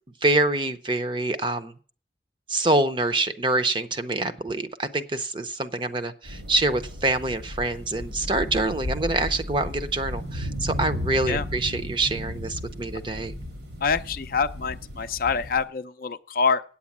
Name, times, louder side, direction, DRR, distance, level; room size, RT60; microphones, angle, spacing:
voice 1, 0.2-1.7 2.5-13.3, right 2 dB, 25° right, 0.6 m, -26 dB
sound 1, 6.2-15.6, left 1 dB, 90° right, 2.6 m, -34 dB
voice 2, 13.8-16.6, left 5 dB, 50° left, 0.5 m, -25 dB
8.7 x 8.6 x 7.2 m
head